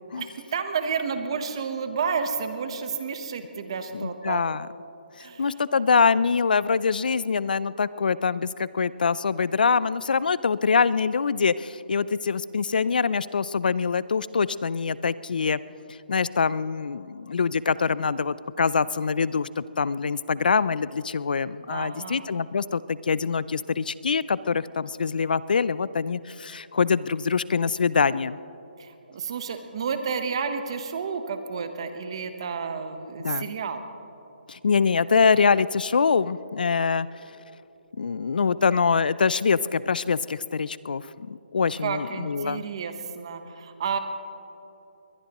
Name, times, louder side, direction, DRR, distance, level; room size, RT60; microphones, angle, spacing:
voice 1, 0.1-4.5 5.2-5.8 21.7-22.3 28.8-33.8 41.8-44.0, right 6 dB, 30° right, 8 dB, 1.0 m, -31 dB
voice 2, 3.9-4.7 5.2-15.6 16.1-28.4 33.2-33.5 34.5-37.1 38.0-42.6, left 5 dB, 60° left, 18 dB, 0.4 m, -24 dB
21.5 x 20.0 x 3.0 m, 3.0 s
hypercardioid pair, 175°, 5 cm